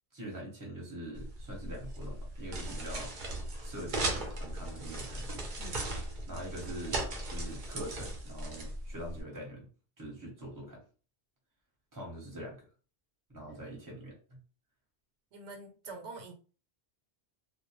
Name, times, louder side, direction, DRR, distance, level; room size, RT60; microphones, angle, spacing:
voice 1, 0.1-3.1 3.6-5.5 6.3-9.7 10.0-10.8 11.9-12.7 13.3-14.4, right 1 dB, 20° right, -2 dB, 1.0 m, -44 dB
sound 1, 1.2-9.2, right 2 dB, 50° right, 0.7 m, -38 dB
voice 2, 5.6-6.0 15.3-16.3, right 3 dB, 90° right, 3 dB, 1.0 m, -46 dB
2.3 x 2.1 x 2.9 m, 0.37 s
omnidirectional pair, 1.1 m